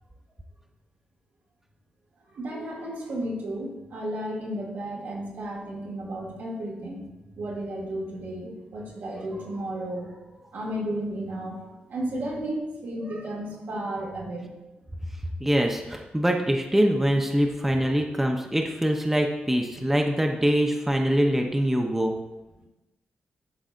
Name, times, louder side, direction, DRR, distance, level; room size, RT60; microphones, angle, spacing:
voice 1, 2.3-7.1 7.4-11.6 11.9-14.5 19.7-19.9, right 1 dB, 75° right, -4 dB, 1.9 m, -33 dB
voice 2, 15.4-22.1, equal, 10° right, 2 dB, 0.7 m, -24 dB
11.0 x 4.0 x 2.5 m, 1.0 s
cardioid pair, 65°, 4 cm